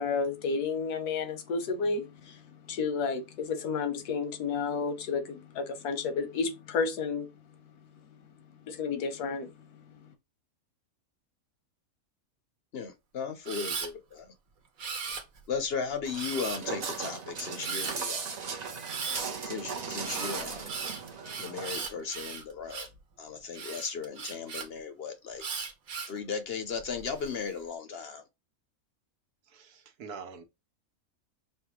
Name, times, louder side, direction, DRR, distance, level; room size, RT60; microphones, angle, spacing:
voice 1, 0.0-7.3 8.7-9.8, left 5 dB, 90° left, 1.3 m, -31 dB
voice 2, 12.7-14.3 15.5-18.4 19.5-20.7 21.4-22.9 23.2-25.4 26.1-28.2, left 5 dB, 55° left, 0.7 m, -36 dB
Camera, 13.4-13.9 14.8-15.5 16.2-16.7 17.6-17.9 18.8-19.2 20.0-23.0 23.5-24.7 25.4-26.2 26.8-27.3, right 5 dB, 65° right, 1.3 m, -37 dB
Walk footsteps, 16.1-21.9, right 5 dB, 50° right, 0.5 m, -37 dB
voice 3, 29.5-30.4, right 5 dB, 90° right, 1.4 m, -44 dB
5.4 x 2.3 x 2.9 m
omnidirectional pair, 1.6 m